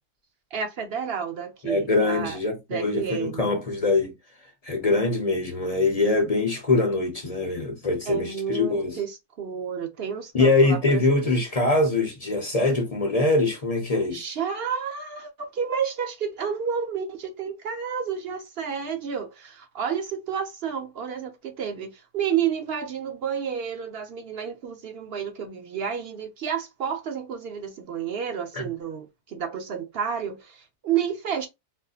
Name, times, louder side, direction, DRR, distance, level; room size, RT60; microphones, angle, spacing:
voice 1, 0.5-2.4 2.7-3.5 8.1-11.0 14.1-31.5, right 7 dB, 65° right, 0.8 m, -30 dB
voice 2, 1.6-4.1 4.6-9.0 10.3-14.2, left 3 dB, 40° left, 0.7 m, -23 dB
4.1 x 2.6 x 2.4 m
omnidirectional pair, 1.2 m